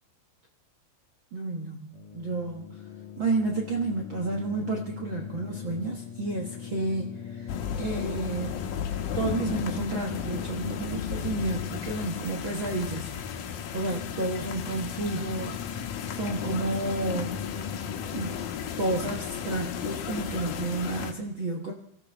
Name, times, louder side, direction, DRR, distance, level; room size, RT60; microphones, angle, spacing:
voice 1, 1.3-2.8 3.2-8.6 9.1-13.1 13.7-17.6 18.1-18.5 18.8-21.7, right 2 dB, 60° right, 0 dB, 1.3 m, -31 dB
sound 1, 1.9-20.0, left 7 dB, 70° left, 2.5 m, -41 dB
sound 2, 7.5-21.1, left 8 dB, 90° left, 3.0 m, -35 dB
25.0 x 14.5 x 3.4 m, 0.71 s
omnidirectional pair, 4.0 m